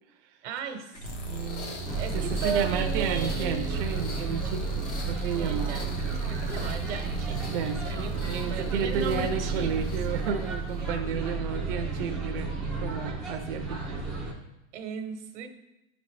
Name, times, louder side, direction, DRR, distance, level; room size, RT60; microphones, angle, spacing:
voice 1, 0.4-3.7 5.3-6.0 6.2-8.1 8.5-9.9 14.7-15.5, right 6 dB, 85° right, 6 dB, 1.1 m, -36 dB
sound 1, 0.9-10.9, equal, 85° left, 1.4 m, -39 dB
sound 2, 1.8-14.3, right 4 dB, ahead, 0.3 m, -32 dB
voice 2, 2.1-5.9 7.4-13.8, right 7 dB, 50° right, 3 dB, 0.5 m, -32 dB
9.3 x 4.0 x 3.2 m, 0.94 s
supercardioid pair, 175°, 34 cm